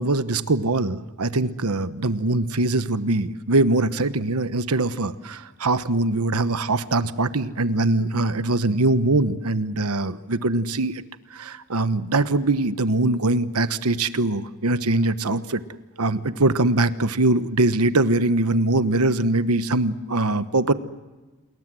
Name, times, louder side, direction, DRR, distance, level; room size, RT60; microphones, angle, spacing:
voice 1, 0.0-10.9 11.3-15.6 16.0-20.7, right 2 dB, 85° right, 12 dB, 1.1 m, -22 dB
28.5 x 21.5 x 7.7 m, 1.2 s
head